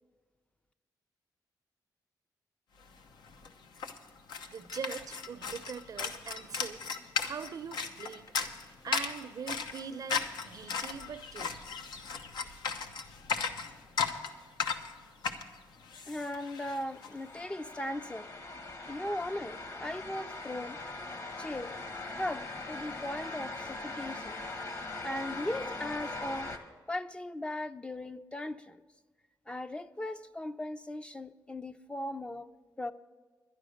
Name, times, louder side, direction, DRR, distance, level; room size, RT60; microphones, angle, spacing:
sound 1, 2.9-3.0 3.2-17.1, left 5 dB, 85° left, 0.9 m, -36 dB
voice 1, 4.5-6.8 7.2-8.3 8.5-11.6, right 6 dB, 55° right, 0.6 m, -42 dB
voice 2, 16.1-18.3 18.9-20.8 21.4-21.8 22.1-24.4 25.0-26.5 26.9-28.8 29.5-32.5 32.8-32.9, left 1 dB, 15° left, 0.4 m, -38 dB
sound 2, 16.5-26.6, left 2 dB, 45° left, 1.4 m, -41 dB
11.0 x 11.0 x 6.4 m
cardioid pair, 100°, 7 cm